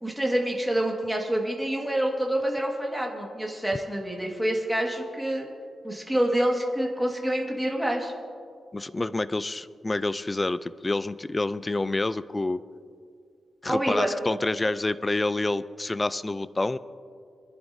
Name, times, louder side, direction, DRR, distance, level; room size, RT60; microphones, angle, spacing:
voice 1, 0.0-5.5 5.8-8.1 13.7-14.1, right 1 dB, 5° right, 0 dB, 1.6 m, -27 dB
voice 2, 8.7-12.6 13.6-16.8, left 2 dB, 20° left, 15 dB, 0.3 m, -28 dB
25.0 x 11.0 x 2.6 m, 2.2 s
wide cardioid pair, 145°, 0 cm